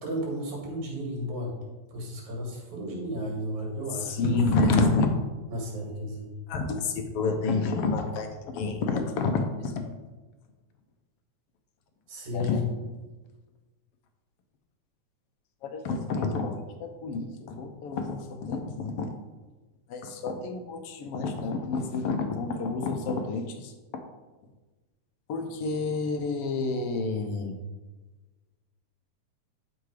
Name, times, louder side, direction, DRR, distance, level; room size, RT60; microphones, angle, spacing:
voice 1, 0.0-1.5 1.9-4.7 5.5-6.3 12.1-12.7, left 1 dB, 75° right, -1 dB, 3.4 m, -33 dB
voice 2, 4.0-5.1 6.5-8.3 8.5-9.7 12.3-12.6 15.6-19.1 19.9-24.0 25.3-27.6, left 3 dB, 70° left, 5 dB, 1.5 m, -29 dB
11.5 x 3.9 x 4.8 m, 1.2 s
omnidirectional pair, 3.4 m